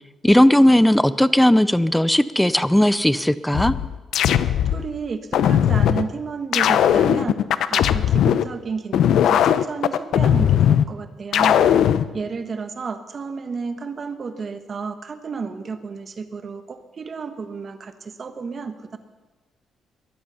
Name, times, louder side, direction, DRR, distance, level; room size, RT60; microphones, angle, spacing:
voice 1, 0.2-3.8, left 1 dB, 5° left, 16 dB, 0.5 m, -16 dB
sound 1, 3.5-4.8 5.3-6.0 6.5-8.4 8.9-10.8 11.3-12.0, left 10 dB, 75° left, 0.6 m, -18 dB
voice 2, 4.6-7.4 7.7-11.6 12.1-19.0, right 5 dB, 40° right, 9 dB, 1.2 m, -31 dB
20.5 x 11.5 x 5.6 m, 1.2 s
cardioid pair, 125°, 0 cm